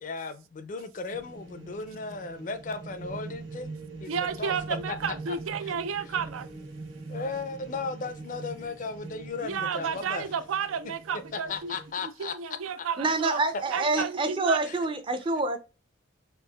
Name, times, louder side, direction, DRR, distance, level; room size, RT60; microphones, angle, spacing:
voice 1, 0.0-4.5 4.9-5.4 5.6-5.7 6.1-6.2 7.1-10.3 11.3-12.3 12.8-12.9 14.0-14.1 14.6-14.8, left 4 dB, 40° left, 0.4 m, -36 dB
sound 1, 1.1-11.9, right 3 dB, 65° right, 1.3 m, -43 dB
voice 2, 4.1-6.5 9.4-11.7 12.0-13.4 13.7-14.6, right 6 dB, 90° right, 0.4 m, -32 dB
voice 3, 13.0-15.6, right 3 dB, 25° right, 0.4 m, -27 dB
4.5 x 2.4 x 2.2 m
head